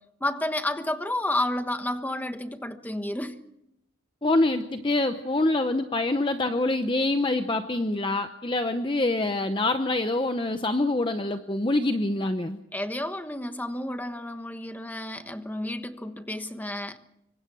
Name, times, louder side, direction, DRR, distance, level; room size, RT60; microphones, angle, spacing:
voice 1, 0.2-3.3 12.7-17.0, left 1 dB, 10° left, 1.2 m, -31 dB
voice 2, 4.2-12.6, left 2 dB, 25° left, 0.8 m, -25 dB
26.0 x 24.0 x 6.2 m
head